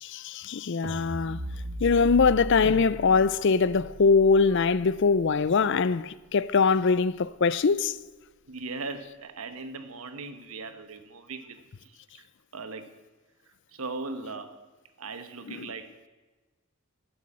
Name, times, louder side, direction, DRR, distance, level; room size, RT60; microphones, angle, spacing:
voice 1, 0.0-1.4 1.8-8.0 15.6-15.7, left 5 dB, 55° left, 0.5 m, -22 dB
sound 1, 0.8-7.1, right 1 dB, 55° right, 1.0 m, -39 dB
voice 2, 8.5-12.3 12.5-12.9 13.5-14.6 15.0-15.9, right 3 dB, 80° right, 1.1 m, -39 dB
13.0 x 7.8 x 8.6 m
head